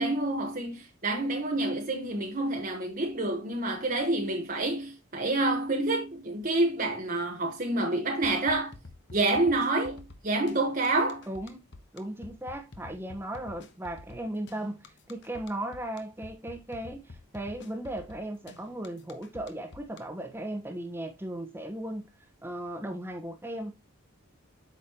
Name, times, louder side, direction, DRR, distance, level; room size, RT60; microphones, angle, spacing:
voice 1, 0.0-8.7 9.1-11.3, right 2 dB, 40° right, 1.2 m, -28 dB
sound 1, 8.2-20.0, left 3 dB, 55° left, 1.1 m, -48 dB
voice 2, 11.3-11.6 11.9-22.0 22.4-23.8, right 1 dB, 10° right, 1.2 m, -37 dB
8.8 x 6.4 x 3.0 m
head